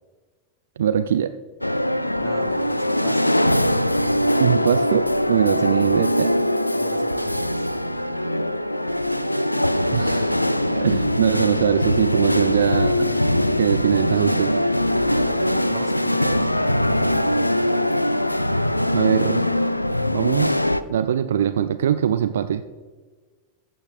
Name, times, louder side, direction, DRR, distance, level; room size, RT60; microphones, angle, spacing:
voice 1, 0.8-1.3 4.4-6.3 9.9-10.3 10.7-13.2 13.6-14.5 18.9-19.4 20.1-22.6, right 9 dB, 65° right, 12 dB, 0.3 m, -22 dB
sound 1, 1.6-20.8, left 1 dB, 85° left, 0.3 m, -22 dB
voice 2, 2.2-3.4 6.7-7.7 15.2-17.7, right 5 dB, 20° right, 6 dB, 1.1 m, -41 dB
14.0 x 7.9 x 3.4 m, 1.4 s
figure-of-eight pair, 90°, 0 cm